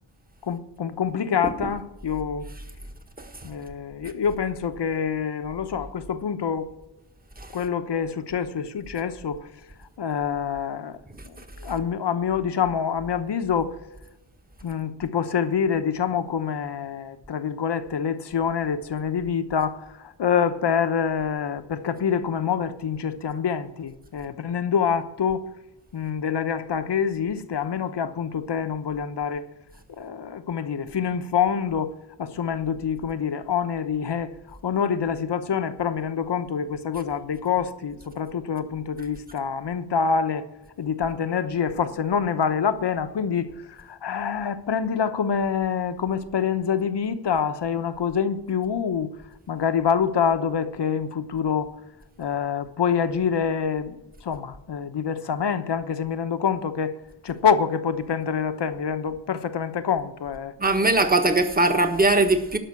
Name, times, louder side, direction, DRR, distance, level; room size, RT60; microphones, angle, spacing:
voice 1, 0.4-2.5 3.4-6.7 7.5-9.5 10.0-11.0 11.3-13.7 14.6-25.5 25.9-29.4 30.0-31.9 32.2-40.5 40.8-49.1 49.5-51.7 52.2-54.0 54.2-56.9 57.2-60.5, left 7 dB, 65° left, 1.0 m, -26 dB
voice 2, 60.6-62.6, right 2 dB, 20° right, 1.4 m, -20 dB
12.0 x 5.8 x 8.3 m
wide cardioid pair, 85°, 44 cm